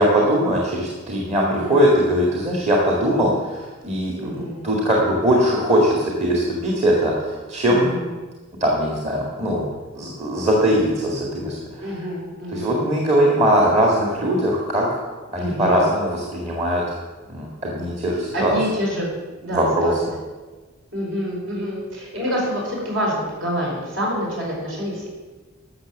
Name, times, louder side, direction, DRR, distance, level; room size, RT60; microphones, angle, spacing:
voice 1, 0.0-7.9 8.6-9.6 9.9-11.9 12.5-15.0 15.3-16.8 17.3-18.6 19.5-19.9, equal, 35° right, -2 dB, 1.9 m, -20 dB
voice 2, 1.4-1.7 4.1-4.7 7.6-8.1 11.8-12.8 15.4-15.9 18.3-19.1 19.4-19.9 20.9-25.1, equal, 65° right, -3 dB, 4.8 m, -27 dB
12.0 x 6.9 x 7.3 m, 1.3 s
head